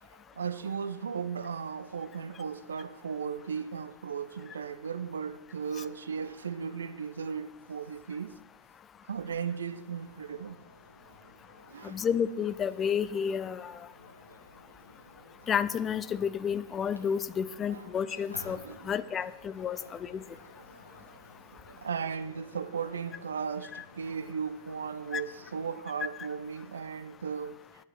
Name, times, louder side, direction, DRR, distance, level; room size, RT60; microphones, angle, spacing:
voice 1, 0.0-8.4 9.1-10.6 11.7-12.1 17.7-17.9 18.5-18.9 19.7-19.8 21.7-27.6, right 6 dB, 70° right, 0.5 m, -36 dB
sound 1, 9.7-25.7, left 1 dB, 85° left, 1.2 m, -54 dB
voice 2, 11.8-13.7 15.5-18.6 18.9-19.8 20.1-20.2 25.1-25.2, left 7 dB, 25° left, 0.5 m, -30 dB
10.5 x 9.3 x 5.5 m
figure-of-eight pair, 90°, 0 cm